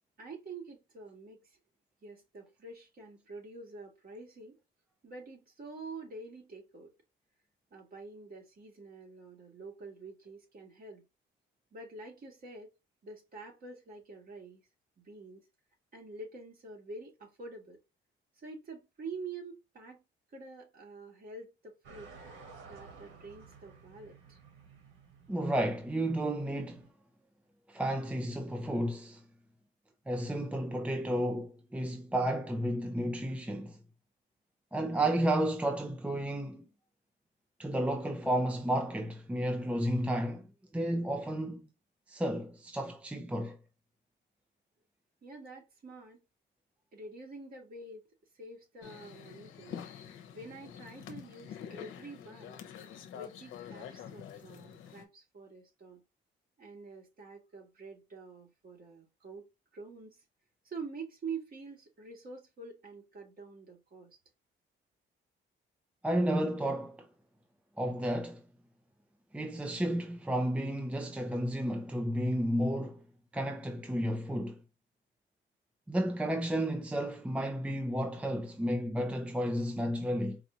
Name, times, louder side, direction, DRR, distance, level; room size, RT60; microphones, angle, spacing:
voice 1, 0.2-1.6 2.0-4.6 5.0-6.9 7.7-11.1 11.7-12.7 13.0-14.6 15.0-15.5 15.9-17.8 18.4-20.0 20.3-22.1 22.6-24.4 45.2-46.2 46.9-48.1 48.3-49.8 50.3-52.6 53.1-56.0 56.6-60.2 60.6-64.2, right 3 dB, 45° right, 2.4 m, -47 dB
sound 1, 21.8-26.9, right 5 dB, 80° right, 1.3 m, -54 dB
voice 2, 25.3-26.9 27.7-29.2 30.1-33.8 34.7-36.6 37.6-40.5 40.7-41.7 42.1-43.6 66.0-67.1 67.8-68.4 69.3-73.0 73.3-74.6 75.9-80.4, right 1 dB, 5° right, 0.5 m, -32 dB
sound 2, 48.8-55.0, left 8 dB, 85° left, 0.8 m, -47 dB
4.6 x 2.5 x 2.8 m
cardioid pair, 90°, 20 cm